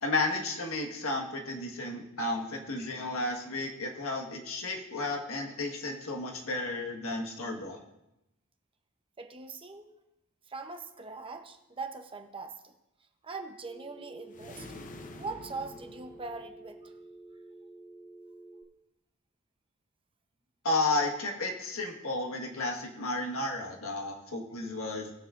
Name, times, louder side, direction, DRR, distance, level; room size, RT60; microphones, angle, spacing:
voice 1, 0.0-7.8 20.6-25.1, left 2 dB, 80° left, 1 dB, 1.6 m, -33 dB
voice 2, 9.2-9.9 10.5-12.7 13.2-14.7 15.2-16.9, right 3 dB, 25° right, 5 dB, 0.8 m, -41 dB
Telephone, 13.6-18.6, right 2 dB, 5° left, 2.1 m, -50 dB
sound 1, 14.3-16.9, left 2 dB, 40° left, 0.7 m, -48 dB
19.5 x 7.4 x 2.5 m, 0.88 s
head